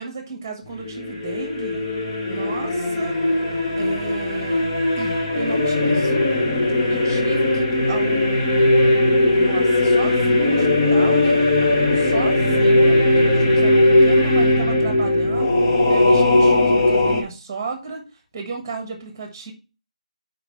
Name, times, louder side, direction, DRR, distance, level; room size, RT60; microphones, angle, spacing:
voice 1, 0.0-1.8 2.3-3.2 3.8-4.7 5.0-6.1 6.9-11.4 12.1-15.6 15.9-18.1 18.3-19.5, right 4 dB, 10° right, 3 dB, 1.4 m, -33 dB
sound 1, 0.8-17.2, left 1 dB, 20° left, 0.9 m, -18 dB
6.5 x 5.1 x 4.6 m, 0.31 s
figure-of-eight pair, 175°, 4 cm